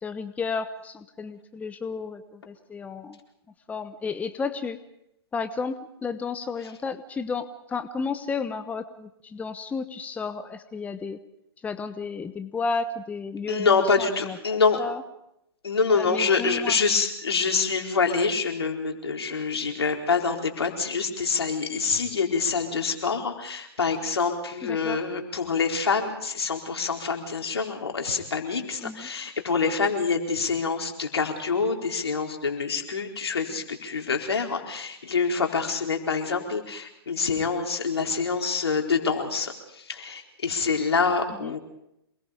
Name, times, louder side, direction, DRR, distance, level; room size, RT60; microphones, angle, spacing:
voice 1, 0.0-3.2 3.7-4.8 5.3-11.2 11.6-15.0 15.9-16.8 24.6-25.0 28.8-29.1 41.4-41.5, left 4 dB, 10° left, 10 dB, 1.1 m, -32 dB
voice 2, 13.5-14.8 15.6-41.6, left 5 dB, 80° left, 3 dB, 4.4 m, -26 dB
27.5 x 21.0 x 5.2 m, 0.81 s
hypercardioid pair, 120°, 13 cm